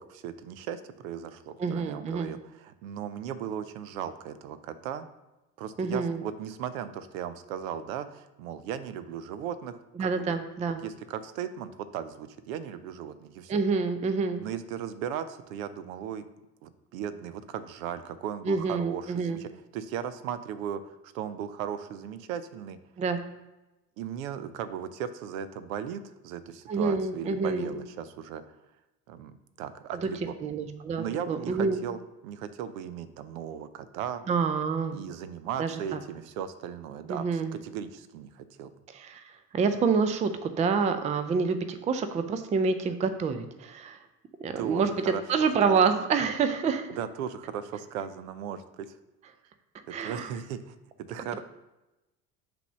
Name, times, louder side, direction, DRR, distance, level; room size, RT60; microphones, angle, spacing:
voice 1, 0.0-5.1 5.6-10.3 10.8-13.5 14.4-16.2 16.6-22.8 24.0-28.4 29.1-30.3 30.9-34.2 34.9-38.7 44.6-45.2 45.6-45.8 46.9-49.0 50.0-50.7 51.1-51.4, right 8 dB, 60° right, 12 dB, 0.7 m, -37 dB
voice 2, 1.6-2.3 5.8-6.2 10.0-10.8 13.5-14.4 18.4-19.4 23.0-23.2 26.7-27.8 30.0-30.1 30.4-31.8 34.3-35.0 35.6-36.0 37.1-37.5 38.9-44.0 44.4-47.0 49.9-50.3, right 5 dB, 15° right, 9 dB, 0.5 m, -27 dB
5.7 x 3.5 x 5.9 m, 1.0 s
figure-of-eight pair, 70°, 48 cm